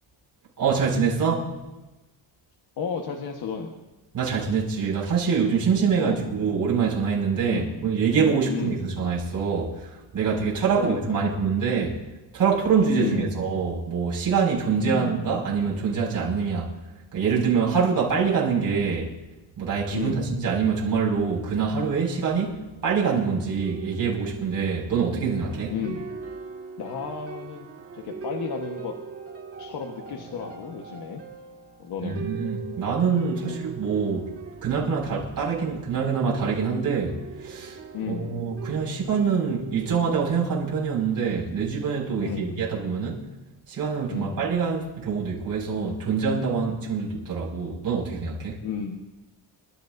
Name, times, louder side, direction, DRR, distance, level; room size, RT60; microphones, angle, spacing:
voice 1, 0.6-1.6 4.1-12.0 12.3-16.7 17.1-19.1 19.6-22.6 22.8-25.8 32.0-34.3 34.6-37.8 38.1-43.2 43.7-48.6, right 5 dB, 45° right, -4 dB, 5.7 m, -25 dB
voice 2, 2.8-3.8 6.0-6.3 7.5-7.7 8.5-8.9 10.7-11.4 13.0-13.3 14.8-15.2 19.9-20.3 25.7-26.1 26.8-27.7 27.9-28.9 29.6-31.2 31.8-32.2 33.4-33.7 37.9-38.4 42.2-42.7 44.1-44.4 48.6-49.0, left 6 dB, 55° left, 2 dB, 1.4 m, -33 dB
sound 1, 22.1-40.2, right 5 dB, 30° right, 1.8 m, -40 dB
28.0 x 13.5 x 2.6 m, 1.0 s
cardioid pair, 155°, 45 cm